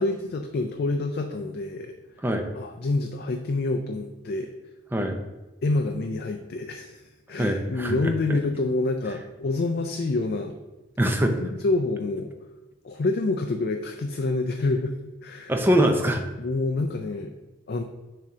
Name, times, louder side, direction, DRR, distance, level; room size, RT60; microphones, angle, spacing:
voice 1, 0.0-2.0 2.5-4.5 5.6-10.5 11.4-12.3 12.8-14.9 15.2-15.5 16.4-17.3 17.7-17.8, left 2 dB, 50° left, 5 dB, 0.4 m, -27 dB
voice 2, 7.4-8.4 11.0-11.4 15.5-16.2, equal, 10° right, 4 dB, 0.5 m, -23 dB
7.3 x 2.8 x 4.8 m, 1.1 s
head